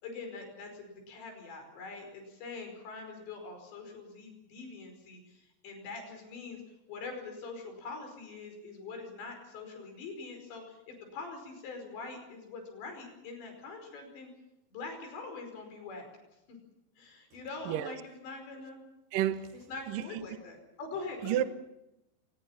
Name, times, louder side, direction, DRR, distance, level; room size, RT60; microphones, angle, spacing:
voice 1, 0.0-6.6 6.9-14.3 14.7-16.1 16.5-16.6 17.0-18.8 19.5-21.5, left 3 dB, 65° left, 7.2 m, -44 dB
voice 2, 19.1-19.5 19.9-20.0 21.2-21.4, right 12 dB, 70° right, 2.1 m, -30 dB
25.0 x 20.0 x 7.4 m
omnidirectional pair, 5.4 m